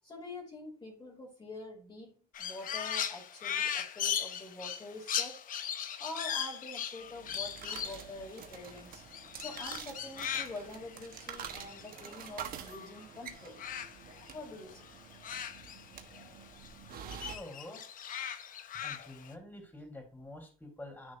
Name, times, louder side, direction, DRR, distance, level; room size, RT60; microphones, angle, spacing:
voice 1, 0.0-2.1 2.4-5.4 6.0-9.0 9.3-13.6 14.3-14.9, left 2 dB, 25° left, -2 dB, 2.7 m, -46 dB
Crow, 2.3-13.0 13.3-16.3 16.6-19.3, left 8 dB, 55° left, 0.9 m, -39 dB
sound 1, 7.0-17.4, right 8 dB, 60° right, 1.1 m, -47 dB
voice 2, 17.1-17.8 18.8-21.1, left 1 dB, 10° left, 2 dB, 3.5 m, -48 dB
10.0 x 6.3 x 2.6 m, 0.38 s
cardioid pair, 110°, 17 cm